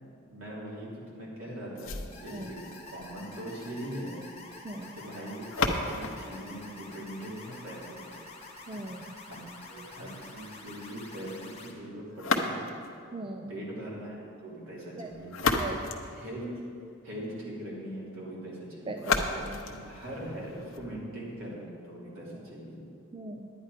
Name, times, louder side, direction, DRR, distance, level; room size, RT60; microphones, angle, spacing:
voice 1, 0.3-4.1 4.9-8.2 9.3-12.7 13.5-14.2 14.4-15.9 16.1-16.6 17.0-19.0 19.6-22.8, right 1 dB, 70° right, -5 dB, 3.1 m, -41 dB
sound 1, 1.8-7.8 12.1-13.0 15.0-17.0 19.0-21.0, left 3 dB, 75° left, 0.9 m, -34 dB
sound 2, 2.1-11.7, left 3 dB, 30° left, 1.2 m, -48 dB
voice 2, 4.6-5.0 8.7-9.1 13.1-13.5 15.0-15.1 15.5-15.8 18.9-19.6 23.1-23.5, right 2 dB, 25° right, 4 dB, 0.4 m, -39 dB
10.5 x 9.8 x 4.9 m, 2.3 s
head